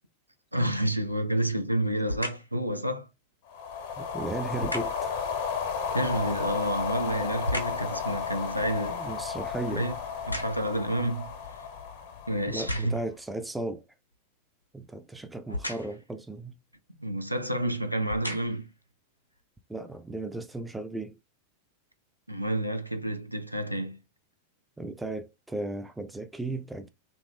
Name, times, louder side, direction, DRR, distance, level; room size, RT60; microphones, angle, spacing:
voice 1, 0.5-3.1 5.9-9.0 9.7-9.9 10.3-11.3 12.3-13.0 17.0-18.7 22.3-24.0, right 1 dB, 90° right, 0.4 m, -29 dB
sound 1, 2.0-2.6 4.6-5.1 6.5-7.9 8.4-10.9 11.5-11.6 12.4-13.2 15.5-16.1 17.1-17.2 17.9-18.7 19.4-19.5, left 1 dB, 85° left, 0.7 m, -36 dB
sound 2, 3.5-13.0, left 6 dB, 50° left, 0.6 m, -33 dB
voice 2, 4.0-5.1 8.9-9.9 12.5-13.8 14.7-16.6 19.7-21.2 24.8-26.9, right 2 dB, 5° right, 0.5 m, -35 dB
2.8 x 2.6 x 3.4 m
figure-of-eight pair, 90°, 0 cm